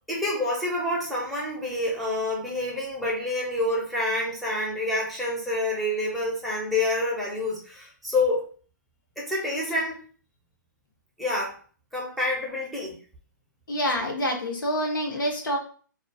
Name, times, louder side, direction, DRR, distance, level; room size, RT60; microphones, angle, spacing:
voice 1, 0.1-8.4 9.2-10.0 11.2-11.5 11.9-13.0, left 2 dB, ahead, -5 dB, 0.6 m, -27 dB
voice 2, 13.7-15.6, equal, 90° left, 1 dB, 0.9 m, -27 dB
2.3 x 2.3 x 2.5 m, 0.41 s
hypercardioid pair, 150°, 11 cm